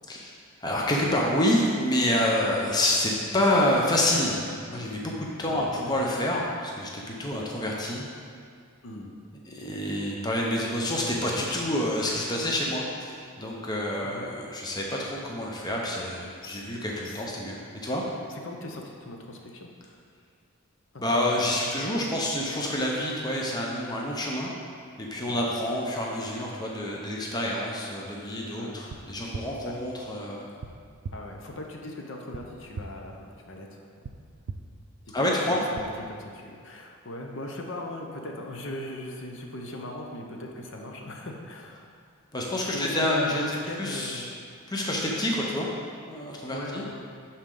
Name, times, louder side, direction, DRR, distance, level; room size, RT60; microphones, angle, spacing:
voice 1, 0.6-8.1 9.5-17.6 17.8-18.0 21.0-24.5 25.0-30.5 35.1-35.6 42.3-44.3 44.7-45.7 46.1-46.8, left 1 dB, 20° left, -2 dB, 0.7 m, -28 dB
voice 2, 8.8-9.1 14.0-14.2 16.4-16.6 17.0-17.2 18.3-20.0 21.2-21.7 25.3-25.5 28.6-28.8 29.6-29.7 31.1-33.8 35.5-41.9 42.6-44.3 46.5-46.9, left 1 dB, 60° left, 1 dB, 0.7 m, -39 dB
sound 1, 28.9-29.0 29.3-29.4 30.6-30.7 31.0-31.1 32.3-32.4 32.7-32.8 34.0-34.1 34.5-34.6 35.7-35.8, right 5 dB, 85° right, 0.4 m, -36 dB
11.0 x 4.3 x 3.8 m, 2.2 s
head